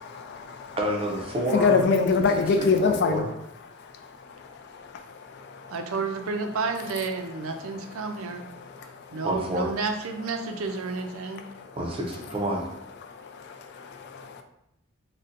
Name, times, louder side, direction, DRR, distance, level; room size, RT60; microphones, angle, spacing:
voice 1, 0.0-0.8 1.5-3.2 4.4-4.5 4.8-5.7 8.6-8.9 13.0-14.4, left 4 dB, 55° left, 6 dB, 0.3 m, -25 dB
voice 2, 0.8-1.8 2.6-3.3 9.2-9.7 11.8-12.6, right 1 dB, 25° right, -1 dB, 0.5 m, -28 dB
voice 3, 5.7-8.4 9.1-11.4, right 4 dB, 85° right, 6 dB, 0.4 m, -30 dB
3.9 x 2.1 x 2.5 m, 0.80 s
head